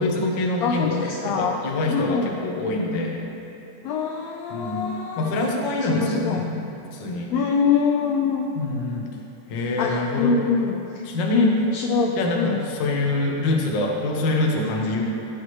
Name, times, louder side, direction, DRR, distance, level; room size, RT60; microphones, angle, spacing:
voice 1, 0.0-3.2 4.5-6.6 6.9-7.3 8.5-9.1 9.5-10.4 11.1-11.6 12.2-15.0, left 2 dB, 60° left, 0 dB, 1.2 m, -25 dB
voice 2, 0.6-1.6 1.9-2.3 3.8-5.4 5.8-6.5 7.3-8.9 9.8-12.6, left 5 dB, 80° left, 1 dB, 1.6 m, -24 dB
15.5 x 7.9 x 3.2 m, 2.8 s
omnidirectional pair, 3.5 m